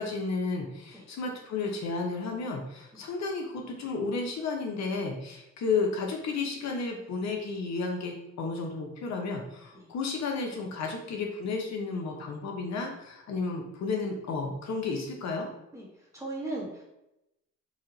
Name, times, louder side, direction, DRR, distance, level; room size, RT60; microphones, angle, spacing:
voice 1, 0.0-15.5, left 4 dB, 65° left, 1 dB, 0.8 m, -32 dB
voice 2, 16.1-16.8, right 2 dB, 10° right, -4 dB, 1.4 m, -37 dB
3.1 x 2.8 x 3.8 m, 0.87 s
cardioid pair, 90°, 30 cm